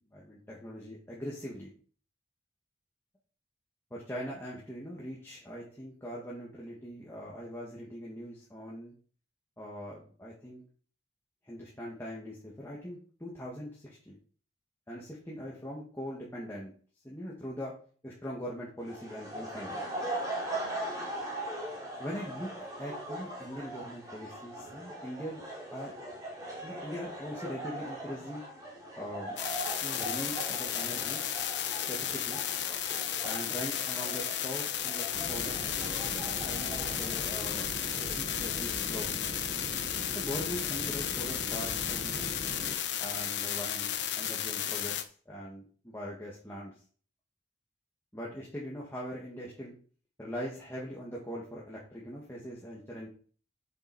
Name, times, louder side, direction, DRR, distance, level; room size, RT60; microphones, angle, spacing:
voice 1, 0.0-1.7 3.9-8.9 9.6-10.6 11.4-14.2 14.9-16.7 17.0-17.7 18.0-19.8 22.0-22.5 22.8-25.4 25.7-25.9 26.6-28.4 29.0-29.4 29.8-31.2 31.9-32.4 33.2-35.6 36.4-37.7 38.1-39.3 40.1-42.3 43.0-45.0 45.3-46.7 48.1-49.7 50.2-53.1, equal, 15° left, -5 dB, 2.0 m, -41 dB
sound 1, 18.8-38.1, right 1 dB, 20° right, 3.0 m, -41 dB
sound 2, 29.4-45.0, left 10 dB, 70° left, 1.0 m, -34 dB
sound 3, 35.1-42.8, right 1 dB, 40° right, 0.9 m, -42 dB
8.1 x 7.8 x 4.3 m, 0.42 s
head